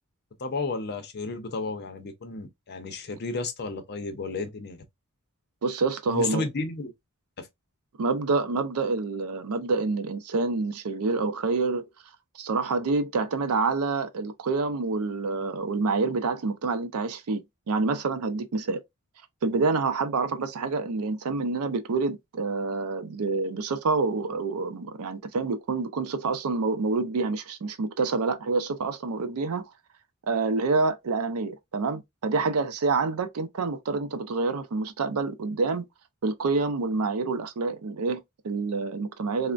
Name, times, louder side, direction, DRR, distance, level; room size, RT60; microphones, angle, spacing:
voice 1, 0.4-4.8 6.1-6.9 7.4-7.5, left 3 dB, 50° left, 0.6 m, -32 dB
voice 2, 5.6-6.4 8.0-11.8 12.3-18.8 19.4-29.7 30.3-35.9 36.2-39.5, right 3 dB, 80° right, 0.5 m, -27 dB
3.2 x 2.1 x 2.5 m
head